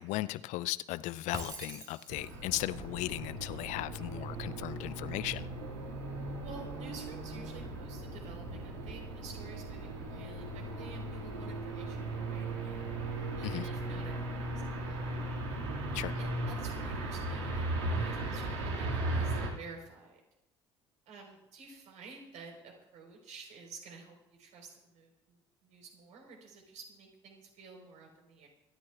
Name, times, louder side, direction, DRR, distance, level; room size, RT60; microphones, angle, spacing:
voice 1, 0.0-5.5 13.4-13.6 15.9-16.2, left 17 dB, 55° left, 16 dB, 0.5 m, -36 dB
Shatter, 1.3-2.5, right 2 dB, 25° right, 2.4 m, -44 dB
sound 1, 2.1-19.5, right 2 dB, 70° right, 2.1 m, -37 dB
voice 2, 6.4-12.8 13.4-14.5 14.8-15.2 16.2-20.2 21.1-28.5, right 4 dB, 55° right, 2 dB, 4.2 m, -51 dB
26.5 x 12.5 x 2.4 m, 0.91 s
figure-of-eight pair, 55°, 15 cm